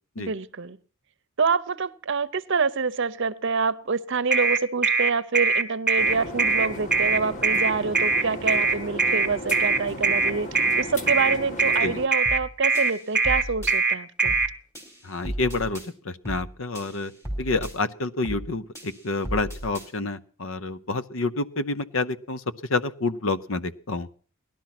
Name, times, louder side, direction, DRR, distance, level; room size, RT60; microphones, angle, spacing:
voice 1, 0.2-0.8 1.4-14.3, right 4 dB, 60° right, 0.7 m, -26 dB
sound 1, 4.3-14.5, right 4 dB, 5° right, 1.3 m, -22 dB
sound 2, 6.0-12.1, equal, 35° left, 1.8 m, -36 dB
sound 3, 12.3-12.5 12.8-13.7 14.3-14.5 14.8-15.9 16.3-16.5 16.8-17.7 18.3-18.5 18.8-19.9, equal, 15° left, 4.4 m, -35 dB
voice 2, 15.0-17.1 17.4-22.4 22.7-24.1, left 3 dB, 70° left, 0.9 m, -28 dB
18.0 x 12.0 x 6.0 m
head